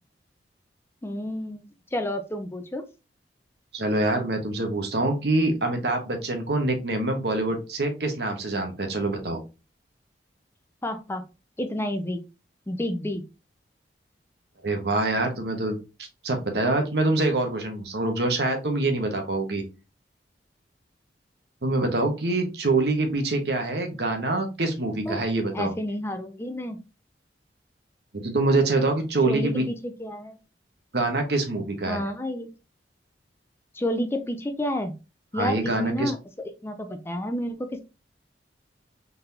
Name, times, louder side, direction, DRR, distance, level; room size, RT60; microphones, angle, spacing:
voice 1, 1.0-1.7 1.9-2.8 10.8-11.2 11.6-12.2 12.7-13.2 25.1-25.2 25.5-26.8 29.3-30.4 31.9-32.5 33.7-34.9 35.3-37.8, left 1 dB, 15° left, 7 dB, 0.4 m, -30 dB
voice 2, 3.7-9.4 14.6-15.8 16.2-19.6 21.6-25.7 28.1-29.6 30.9-32.0 35.3-36.1, right 2 dB, 65° right, 4 dB, 1.1 m, -25 dB
3.9 x 3.5 x 2.7 m, 0.29 s
head